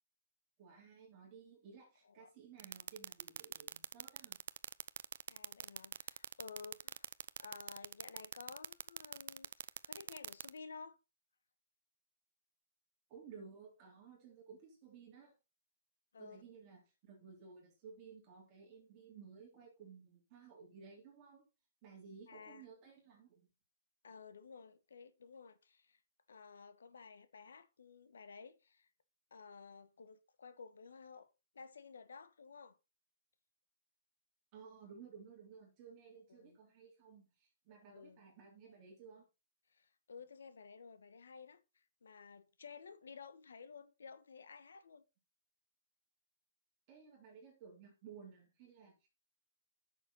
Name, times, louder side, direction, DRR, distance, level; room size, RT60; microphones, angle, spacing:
voice 1, 0.6-4.4 13.1-15.3 16.2-21.5 21.8-23.5 34.5-39.2 46.9-49.1, right 6 dB, 25° right, 3.4 m, -56 dB
sound 1, 2.6-10.5, right 9 dB, 55° right, 0.5 m, -43 dB
voice 2, 5.3-7.1 7.4-11.0 16.1-16.4 22.3-22.6 24.0-26.0 26.3-28.9 29.3-32.8 36.3-36.6 37.9-38.2 39.7-41.6 42.0-45.0, left 5 dB, 85° left, 1.3 m, -54 dB
9.6 x 6.7 x 4.1 m
hypercardioid pair, 160°, 0 cm